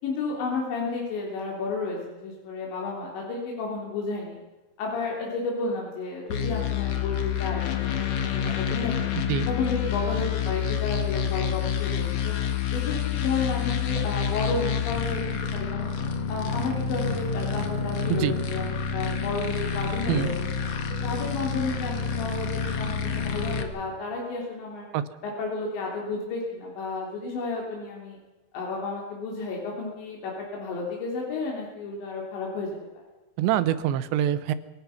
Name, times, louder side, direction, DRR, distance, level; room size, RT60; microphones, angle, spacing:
voice 1, 0.0-4.4 4.8-9.1 9.5-12.3 12.7-15.9 16.3-18.7 18.9-20.5 21.0-24.9 25.2-28.2 28.5-32.7, left 3 dB, 85° left, -2 dB, 5.7 m, -32 dB
sound 1, 6.3-23.6, left 7 dB, 50° left, 2.2 m, -28 dB
voice 2, 33.4-34.5, right 11 dB, 85° right, 14 dB, 3.2 m, -25 dB
26.0 x 18.0 x 5.9 m, 1.1 s
omnidirectional pair, 5.0 m